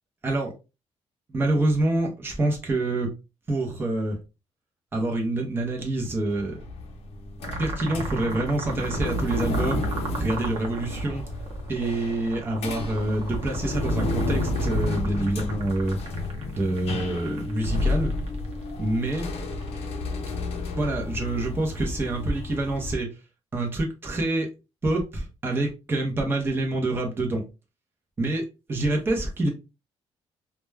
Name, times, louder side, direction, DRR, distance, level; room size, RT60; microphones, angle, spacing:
voice 1, 0.2-0.5 1.3-3.1 3.5-4.2 4.9-6.6 7.6-9.9 10.2-11.2 11.7-16.0 16.5-18.1 18.8-19.3 20.7-23.1 23.5-24.5 24.8-27.4 28.2-29.5, right 2 dB, 20° right, 1 dB, 0.6 m, -26 dB
sound 1, 6.3-22.9, left 2 dB, 65° left, 0.6 m, -31 dB
sound 2, 7.4-20.7, right 3 dB, 65° right, 0.7 m, -39 dB
2.2 x 2.1 x 3.2 m, 0.28 s
cardioid pair, 180°, 11 cm